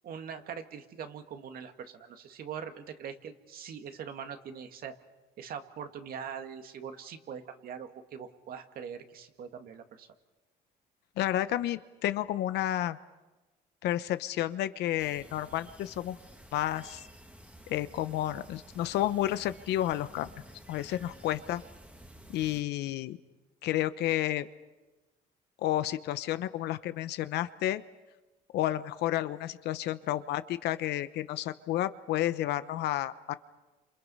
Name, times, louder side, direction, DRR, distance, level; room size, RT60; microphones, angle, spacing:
voice 1, 0.0-4.9 5.4-10.1, right 7 dB, 60° right, 7 dB, 2.1 m, -42 dB
voice 2, 11.2-13.0 13.8-16.2 16.5-17.1 17.7-20.3 20.7-21.6 22.3-23.2 23.6-24.5 25.6-27.8 28.5-33.3, left 13 dB, 80° left, 13 dB, 1.0 m, -31 dB
sound 1, 15.0-22.6, equal, 10° right, 1.9 m, -52 dB
30.0 x 27.5 x 5.6 m, 1.1 s
cardioid pair, 110°, 17 cm